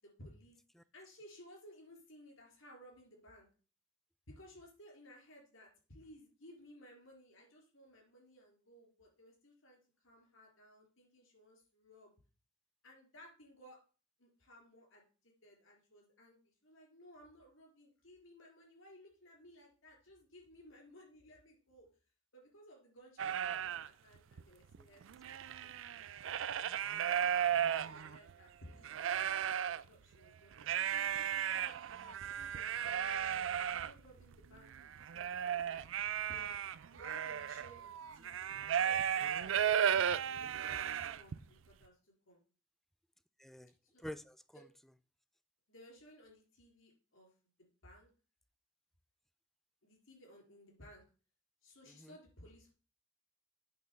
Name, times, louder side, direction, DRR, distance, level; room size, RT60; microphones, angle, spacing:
voice 1, 0.0-0.6 0.9-3.5 4.3-12.1 12.8-13.8 14.2-21.9 22.3-25.0 27.0-33.2 33.6-35.8 36.2-36.6 36.9-42.4 43.8-44.0 45.7-47.3 47.6-48.1 49.8-51.0 51.6-52.7, equal, 75° left, 3.5 m, -59 dB
sound 1, 23.2-23.9 24.4-24.5 24.7-28.3 28.8-29.8 30.6-41.4, right 9 dB, 65° right, 0.4 m, -35 dB
voice 2, 43.4-44.7 51.9-52.2, equal, ahead, 0.3 m, -50 dB
8.6 x 3.8 x 6.7 m
head